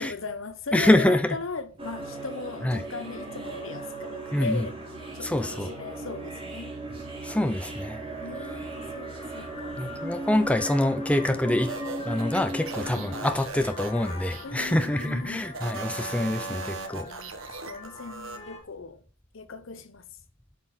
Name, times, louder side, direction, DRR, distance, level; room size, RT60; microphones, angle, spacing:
voice 1, 0.0-4.8 5.1-6.7 8.2-9.8 12.9-13.1 14.4-15.5 16.2-19.0 19.3-20.1, left 4 dB, 70° left, 1.0 m, -38 dB
voice 2, 0.7-1.4 2.6-2.8 4.3-4.7 5.2-5.7 7.2-8.0 9.8-11.7 12.0-17.1, left 1 dB, 5° left, 0.8 m, -25 dB
sound 1, 1.8-13.4, right 2 dB, 30° right, 3.5 m, -37 dB
Vehicle horn car horn honking, 7.9-18.6, left 3 dB, 30° left, 2.1 m, -45 dB
sound 2, 11.6-15.1 15.5-18.4, right 4 dB, 80° right, 1.3 m, -39 dB
8.4 x 6.0 x 6.3 m
head